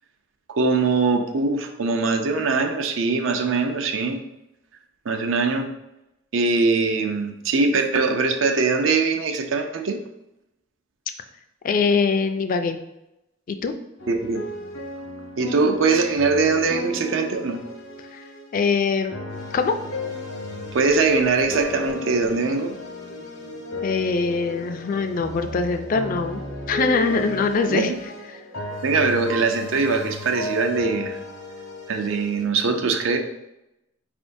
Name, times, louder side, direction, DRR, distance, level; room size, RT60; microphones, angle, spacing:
voice 1, 0.5-4.2 5.1-5.7 6.3-10.0 14.1-14.4 15.4-17.6 20.7-22.7 27.7-28.0 28.8-31.2 31.9-33.2, right 4 dB, 75° right, 5 dB, 0.5 m, -22 dB
voice 2, 11.6-12.8 13.5-13.7 18.1-18.2 18.5-19.1 19.5-19.8 23.8-26.4 26.7-27.9 28.3-28.4, left 4 dB, 45° left, 7 dB, 0.3 m, -22 dB
sound 1, 14.0-18.5 19.1-32.4, left 1 dB, 80° left, 0.8 m, -35 dB
sound 2, 19.0-28.8, equal, 45° right, 0.9 m, -44 dB
4.4 x 3.4 x 2.6 m, 0.88 s
head